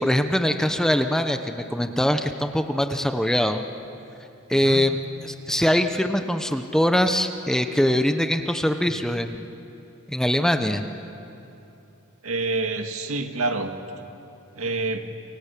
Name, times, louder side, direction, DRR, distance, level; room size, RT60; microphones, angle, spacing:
voice 1, 0.0-3.6 4.5-5.0 5.5-9.5 10.1-10.8, equal, 5° left, 7 dB, 0.9 m, -22 dB
voice 2, 4.5-4.8 12.2-13.7 14.5-15.1, right 3 dB, 75° right, 5 dB, 2.0 m, -27 dB
28.5 x 24.0 x 8.5 m, 3.0 s
head